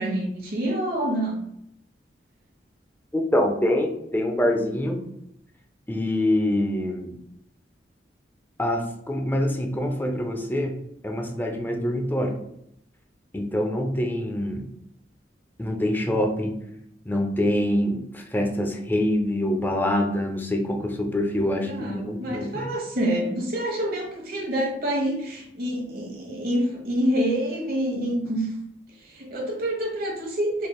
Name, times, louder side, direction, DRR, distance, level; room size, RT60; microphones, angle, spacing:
voice 1, 0.0-1.4 21.6-28.5 29.0-30.7, right 1 dB, 55° right, 0 dB, 1.2 m, -27 dB
voice 2, 3.1-5.0 5.9-7.1 8.6-10.8 11.0-12.4 13.3-14.6 15.6-16.6 17.1-22.7, left 1 dB, 10° left, 2 dB, 0.6 m, -25 dB
4.5 x 3.3 x 2.3 m, 0.74 s
head